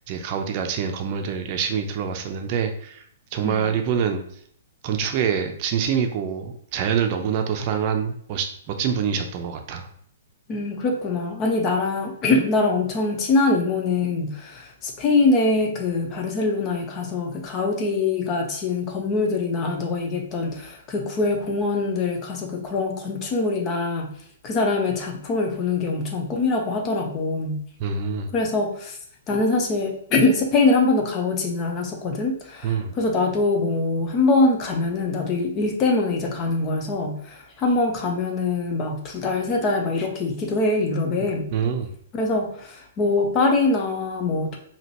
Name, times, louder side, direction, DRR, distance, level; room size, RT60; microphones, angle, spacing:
voice 1, 0.1-3.0 3.3-4.2 4.8-9.9 27.8-28.3 32.6-32.9 41.5-41.9, right 7 dB, 40° right, 5 dB, 0.7 m, -25 dB
voice 2, 10.5-24.1 24.4-27.6 28.3-29.0 29.3-41.5 42.1-44.6, left 3 dB, 30° left, 2 dB, 0.9 m, -23 dB
5.0 x 2.9 x 2.9 m, 0.63 s
figure-of-eight pair, 115°, 0 cm